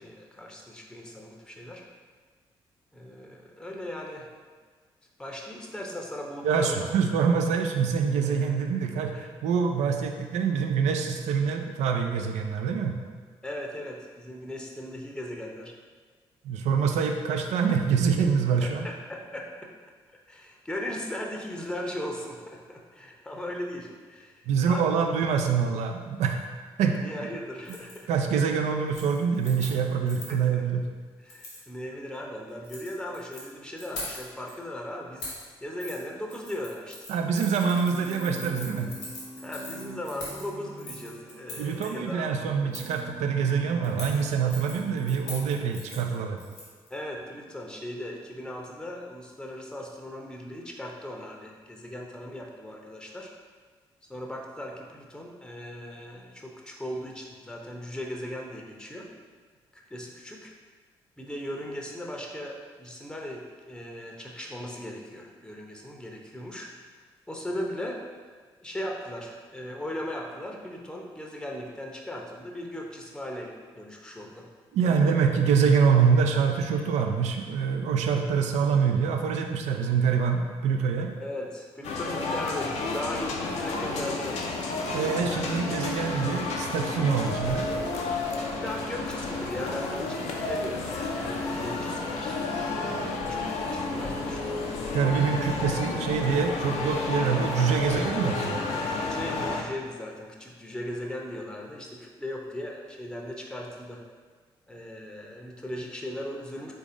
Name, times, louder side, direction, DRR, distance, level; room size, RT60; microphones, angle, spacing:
voice 1, 0.0-1.8 2.9-4.3 5.2-6.9 9.1-9.3 13.4-15.7 18.6-19.5 20.3-25.0 27.0-28.1 30.3-30.6 31.2-35.3 35.6-37.2 39.4-42.3 46.9-53.3 54.1-59.1 59.9-60.5 61.2-66.7 67.3-68.0 68.6-74.5 75.0-75.2 81.2-84.5 88.4-94.6 99.0-104.0 104.7-106.7, left 1 dB, 5° left, 0 dB, 0.8 m, -38 dB
voice 2, 6.4-9.1 9.4-13.0 16.4-18.9 24.5-26.4 26.8-27.0 28.1-30.8 37.1-38.9 41.6-46.4 74.7-81.1 84.9-87.7 94.9-98.6, right 6 dB, 60° right, 4 dB, 0.5 m, -25 dB
Keys jangling, 27.6-28.0 28.3-28.6 28.9-30.4 31.3-31.6 32.5-33.4 33.8-34.5 35.2-35.5 35.8-36.0 36.3-41.9 42.7-43.0 43.8-46.9 47.2-47.3, left 2 dB, 75° left, 1.2 m, -42 dB
sound 1, 37.5-45.8, right 3 dB, 80° right, 0.9 m, -45 dB
sound 2, 81.8-99.6, left 3 dB, 60° left, 0.6 m, -31 dB
3.9 x 3.5 x 3.8 m, 1.5 s
figure-of-eight pair, 40°, 13 cm